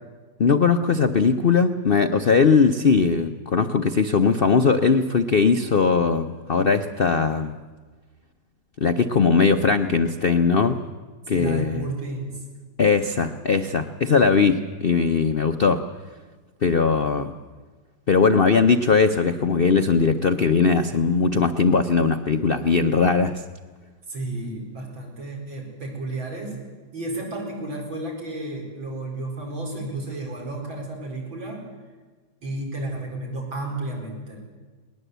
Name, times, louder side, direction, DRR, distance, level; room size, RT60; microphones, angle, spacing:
voice 1, 0.4-7.5 8.8-10.8 11.3-11.9 12.8-15.8 16.6-17.3 18.1-23.3, left 5 dB, 75° left, 8 dB, 0.5 m, -19 dB
voice 2, 11.3-12.4 24.1-26.6 26.9-31.7 32.4-34.4, right 2 dB, 85° right, 0 dB, 5.5 m, -32 dB
20.0 x 19.5 x 8.1 m, 1.4 s
omnidirectional pair, 2.1 m